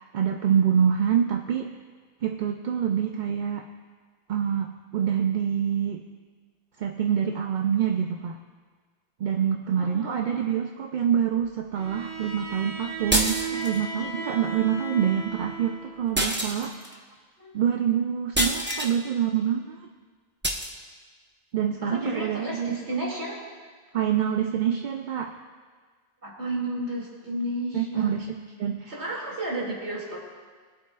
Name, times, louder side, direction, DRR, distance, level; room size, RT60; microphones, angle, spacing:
voice 1, 0.0-1.8 2.2-3.7 4.3-6.0 6.8-8.4 9.2-17.0 17.5-19.9 21.5-22.8 23.9-25.4 27.7-28.3 28.6-29.0, right 8 dB, 55° right, 3 dB, 0.6 m, -26 dB
voice 2, 9.7-10.5 15.8-15.9 17.4-17.5 21.8-23.4 26.2-28.3 28.9-30.2, right 1 dB, 75° right, -4 dB, 2.8 m, -32 dB
Bowed string instrument, 11.7-16.0, right 4 dB, 70° left, 2.1 m, -36 dB
sound 1, 13.1-13.8 16.2-16.9 18.4-19.0 20.4-20.7, equal, 10° right, 0.7 m, -26 dB
21.5 x 8.4 x 2.4 m, 1.6 s
omnidirectional pair, 1.1 m